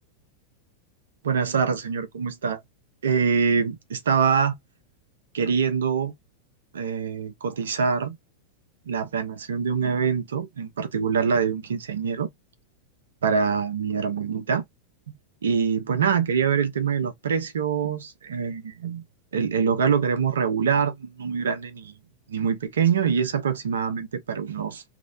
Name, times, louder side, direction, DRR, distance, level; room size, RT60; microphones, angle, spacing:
voice 1, 1.2-2.6 3.0-4.5 5.3-6.1 6.7-8.2 8.9-12.3 13.2-14.6 15.1-15.2 15.4-19.0 19.3-21.9 22.3-24.8, right 6 dB, 65° right, 0.9 m, -24 dB
3.1 x 3.0 x 2.4 m
figure-of-eight pair, 90°, 0 cm